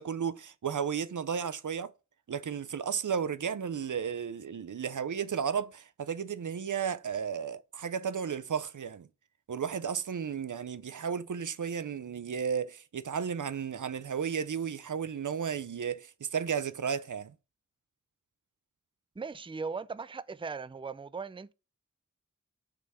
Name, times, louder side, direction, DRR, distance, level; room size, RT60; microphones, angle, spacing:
voice 1, 0.0-1.9 2.3-9.1 9.5-17.3, right 7 dB, 85° right, 0.5 m, -33 dB
voice 2, 19.2-21.5, right 5 dB, 20° right, 0.4 m, -38 dB
6.9 x 3.5 x 4.7 m
wide cardioid pair, 45°, 30 cm